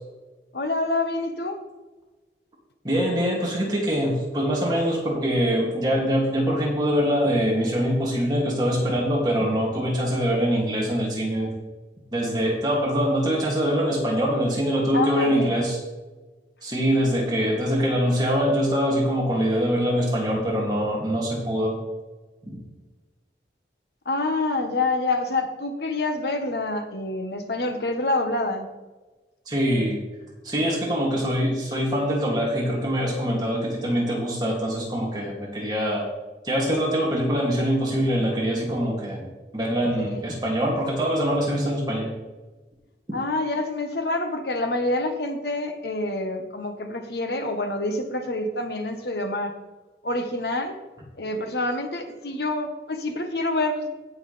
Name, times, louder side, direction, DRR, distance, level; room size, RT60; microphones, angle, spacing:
voice 1, 0.5-1.6 14.9-15.6 24.0-28.7 40.0-40.2 43.1-49.6 50.0-50.8 51.2-53.9, left 2 dB, 70° left, 6 dB, 1.3 m, -27 dB
voice 2, 2.8-11.6 12.1-15.8 16.6-21.8 29.5-30.0 30.4-36.0 36.4-39.3 39.5-42.1, equal, 25° right, -3 dB, 2.5 m, -24 dB
17.0 x 6.5 x 3.4 m, 1.2 s
head